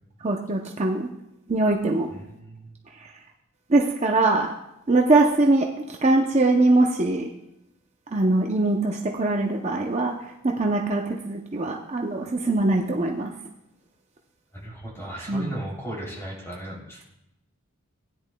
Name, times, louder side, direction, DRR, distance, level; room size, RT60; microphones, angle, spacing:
voice 1, 0.2-1.1 1.5-2.1 3.0-3.1 3.7-4.5 4.9-7.3 8.1-10.1 10.4-13.3 15.2-15.5, right 2 dB, 30° right, 1 dB, 0.6 m, -22 dB
voice 2, 2.1-2.7 14.5-17.0, right 1 dB, 15° left, -4 dB, 3.1 m, -36 dB
16.5 x 10.0 x 2.3 m, 0.86 s
head